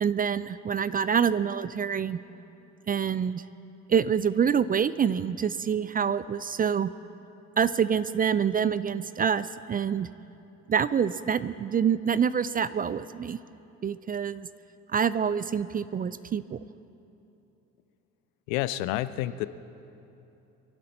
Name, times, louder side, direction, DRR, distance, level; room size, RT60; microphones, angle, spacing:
voice 1, 0.0-2.2 2.9-3.4 3.9-6.9 7.6-10.1 10.7-13.4 13.8-14.5 14.9-16.6, right 7 dB, 25° right, 16 dB, 0.4 m, -26 dB
voice 2, 18.5-19.5, left 15 dB, 75° left, 15 dB, 0.6 m, -29 dB
24.0 x 11.5 x 4.3 m, 2.9 s
hypercardioid pair, 50°, 40 cm